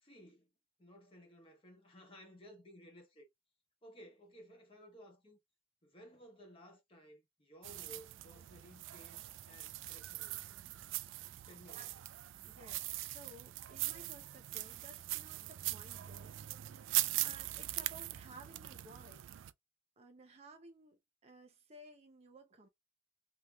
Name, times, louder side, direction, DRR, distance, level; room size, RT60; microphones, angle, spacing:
voice 1, 0.0-0.5 0.8-3.3 3.8-5.4 5.8-10.6 11.5-11.9, equal, 30° left, 1.2 m, -57 dB
sound 1, 7.6-19.5, right 16 dB, 85° right, 0.3 m, -41 dB
voice 2, 12.4-16.8 17.2-19.3 20.0-22.7, right 2 dB, 35° right, 0.6 m, -57 dB
3.4 x 2.8 x 2.2 m
head